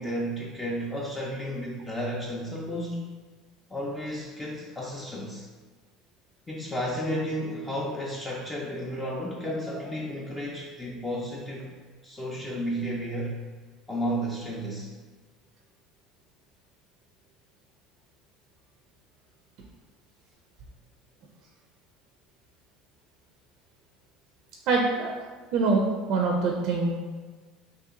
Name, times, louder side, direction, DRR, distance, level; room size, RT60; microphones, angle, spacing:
voice 1, 0.0-3.1 3.7-5.5 6.5-11.7 12.0-13.4 13.9-14.9, equal, 10° left, -4 dB, 0.4 m, -32 dB
voice 2, 24.7-25.1 25.5-26.9, right 3 dB, 60° right, 0 dB, 0.5 m, -24 dB
2.9 x 2.8 x 3.6 m, 1.4 s
cardioid pair, 135°, 0 cm